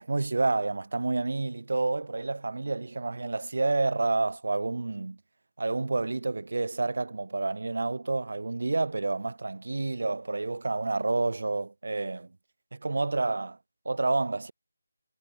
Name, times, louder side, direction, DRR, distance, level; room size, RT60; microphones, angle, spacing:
voice 1, 0.0-5.2 5.6-12.3 12.7-13.6 13.9-14.5, right 3 dB, 60° right, 0.4 m, -29 dB
figure-of-eight pair, 160°, 0 cm